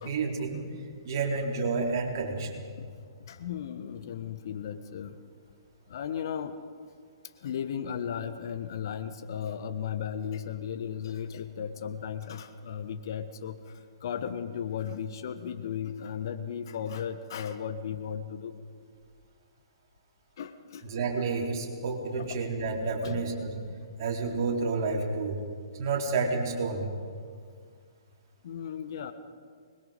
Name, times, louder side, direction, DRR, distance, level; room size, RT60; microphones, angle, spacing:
voice 1, 0.0-0.6 1.0-2.6 20.8-23.6 24.0-25.4 25.8-26.9, right 4 dB, 40° right, -1 dB, 4.1 m, -30 dB
voice 2, 3.3-5.1 5.9-6.5 7.4-18.5 20.4-20.8 22.2-22.4 23.0-23.2 28.4-29.1, left 8 dB, 50° left, 10 dB, 1.2 m, -36 dB
25.0 x 21.5 x 5.3 m, 2.1 s
figure-of-eight pair, 125°, 3 cm